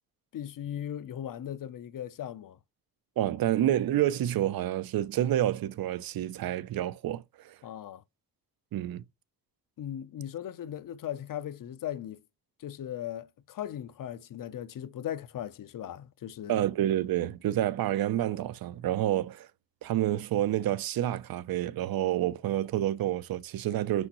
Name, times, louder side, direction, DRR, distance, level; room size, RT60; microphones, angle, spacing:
voice 1, 0.3-2.6 7.6-8.0 9.8-12.2 12.6-16.7, left 10 dB, 65° left, 0.6 m, -38 dB
voice 2, 3.2-7.6 8.7-9.0 16.5-19.5 19.8-24.1, right 12 dB, 85° right, 0.5 m, -28 dB
6.2 x 5.4 x 2.9 m
wide cardioid pair, 160°, 35 cm